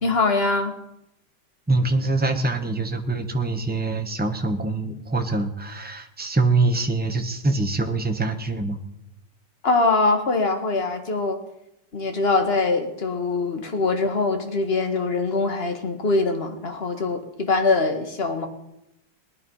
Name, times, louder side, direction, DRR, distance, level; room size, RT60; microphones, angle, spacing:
voice 1, 0.0-0.8 9.6-11.4 11.9-18.5, left 3 dB, 35° left, 5 dB, 1.8 m, -23 dB
voice 2, 1.7-8.8, right 2 dB, 5° right, 6 dB, 0.9 m, -24 dB
19.0 x 11.0 x 5.5 m, 0.85 s
omnidirectional pair, 2.0 m